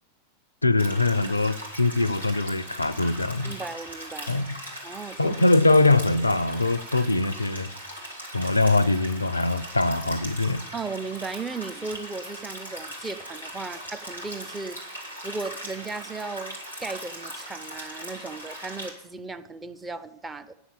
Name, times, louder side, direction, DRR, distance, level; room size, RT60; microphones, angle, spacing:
voice 1, 0.6-3.6 4.3-4.6 5.2-7.7 8.3-10.6, left 2 dB, 80° left, 18 dB, 0.5 m, -22 dB
sound 1, 0.8-18.9, equal, 85° right, 2.8 m, -39 dB
voice 2, 3.4-4.4 4.8-5.3 10.7-14.8 15.2-20.5, right 4 dB, 10° right, 9 dB, 0.7 m, -36 dB
9.6 x 7.2 x 8.8 m, 0.89 s
figure-of-eight pair, 90°, 0 cm